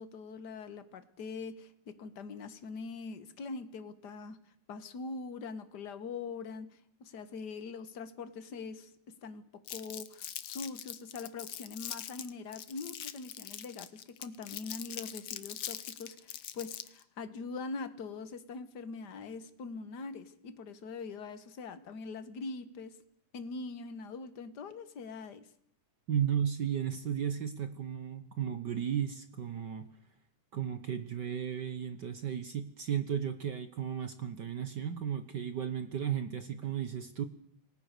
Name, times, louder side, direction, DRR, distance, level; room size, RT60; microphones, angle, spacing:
voice 1, 0.0-4.4 4.7-9.4 9.7-23.0 23.3-25.5, left 4 dB, 45° left, 11 dB, 1.6 m, -43 dB
Crumpling crinkling, 9.7-17.0, left 11 dB, 60° left, 1.7 m, -42 dB
voice 2, 26.1-29.9 30.5-37.2, right 9 dB, 65° right, 11 dB, 1.0 m, -34 dB
28.0 x 19.0 x 6.8 m, 0.68 s
omnidirectional pair, 3.5 m